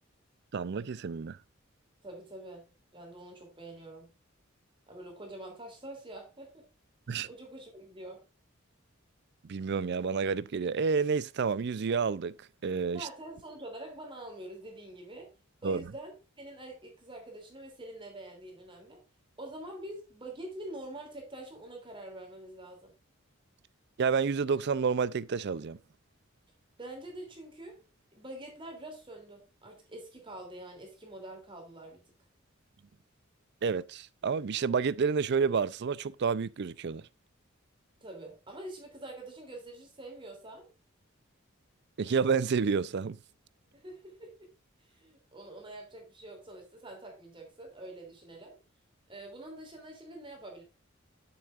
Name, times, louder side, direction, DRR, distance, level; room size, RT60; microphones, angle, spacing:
voice 1, 0.5-1.4 7.1-7.3 9.4-12.3 12.6-13.1 15.6-15.8 24.0-25.8 33.6-37.1 42.0-43.2, right 5 dB, 55° right, 0.5 m, -29 dB
voice 2, 2.0-4.1 4.9-6.6 7.3-8.2 12.9-15.3 15.6-19.0 19.4-22.9 26.8-27.8 28.1-32.0 38.0-40.7 43.7-44.5 44.8-48.6 49.1-50.6, right 1 dB, 25° right, 3.0 m, -46 dB
9.6 x 7.1 x 2.5 m
head